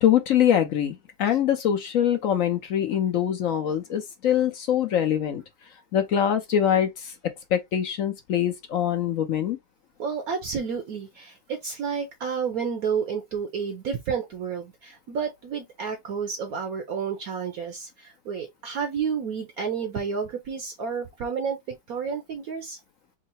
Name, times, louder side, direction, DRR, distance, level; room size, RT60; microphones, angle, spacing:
voice 1, 0.0-5.4 5.9-7.1 7.5-9.6, left 9 dB, 65° left, 0.8 m, -23 dB
voice 2, 10.0-22.8, right 6 dB, 65° right, 1.0 m, -30 dB
3.8 x 2.1 x 4.1 m
omnidirectional pair, 1.9 m